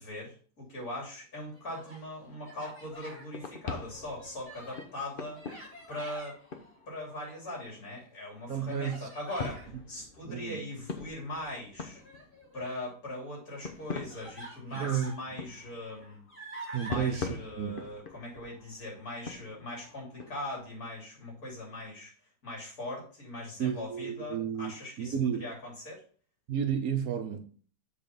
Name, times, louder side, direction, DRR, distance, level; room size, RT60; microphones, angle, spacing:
voice 1, 0.0-5.4 5.9-6.4 6.9-12.0 12.5-16.2 16.8-22.1 22.4-25.1 25.4-26.0, left 1 dB, 60° left, 3.7 m, -40 dB
Human voice, 1.4-2.0 2.4-3.3 3.8-4.9 5.3-6.3 7.0-7.8 8.7-9.7 11.9-12.9 13.6-13.7 14.1-15.2 15.7-17.2, right 1 dB, 5° left, 3.0 m, -47 dB
sound 1, 2.2-8.4 8.9-9.0 9.4-12.8 13.3-20.7, left 4 dB, 40° left, 0.9 m, -44 dB
voice 2, 8.5-9.1 10.2-10.7 14.7-15.2 16.7-17.8 23.6-25.5 26.5-27.4, right 8 dB, 65° right, 1.2 m, -32 dB
7.4 x 4.4 x 5.5 m
omnidirectional pair, 1.7 m